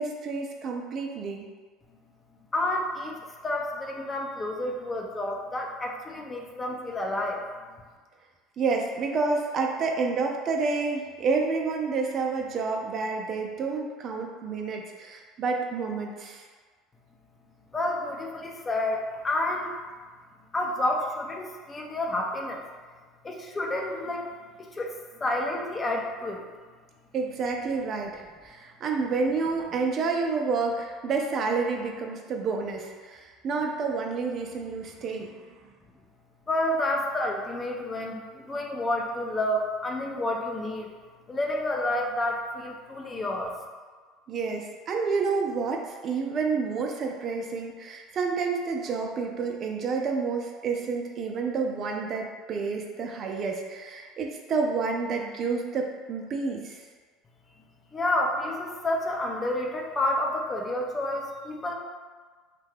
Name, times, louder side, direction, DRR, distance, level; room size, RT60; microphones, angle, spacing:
voice 1, 0.0-1.5 8.6-16.4 27.1-35.5 44.3-56.8, right 4 dB, 45° right, 1 dB, 0.4 m, -29 dB
voice 2, 2.5-3.2 3.4-7.4 17.7-19.8 20.5-22.6 23.2-24.3 24.6-26.4 36.5-40.9 41.3-43.5 57.9-61.7, left 1 dB, 25° left, 1 dB, 0.5 m, -29 dB
2.7 x 2.2 x 3.3 m, 1.5 s
hypercardioid pair, 75°, 0 cm